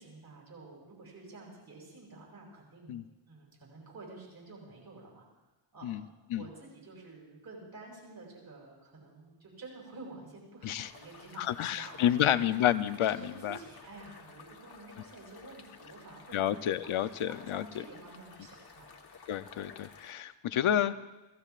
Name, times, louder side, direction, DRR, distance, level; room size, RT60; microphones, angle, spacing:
voice 1, 0.0-3.0 3.3-5.2 5.7-12.5 13.0-16.6 17.2-18.9, right 3 dB, 50° right, -4 dB, 7.6 m, -50 dB
sound 1, 10.8-20.1, left 5 dB, 50° left, 1.5 m, -54 dB
voice 2, 11.4-13.6 16.3-17.6 19.3-21.1, left 11 dB, 80° left, 12 dB, 0.7 m, -29 dB
29.0 x 17.5 x 2.5 m, 1.1 s
wide cardioid pair, 175°, 48 cm